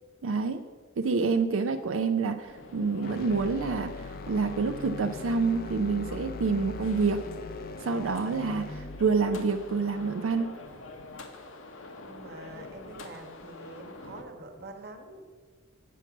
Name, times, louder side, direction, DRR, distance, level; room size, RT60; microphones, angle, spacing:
voice 1, 0.2-0.6 1.0-7.2 7.8-10.5, right 4 dB, 75° right, 7 dB, 0.4 m, -27 dB
sound 1, 2.4-14.2, left 2 dB, 70° left, 1.0 m, -46 dB
sound 2, 3.0-11.2, left 3 dB, 45° left, 0.4 m, -41 dB
voice 2, 12.0-15.2, right 2 dB, 50° right, 4 dB, 1.2 m, -45 dB
8.1 x 5.9 x 7.0 m, 1.5 s
head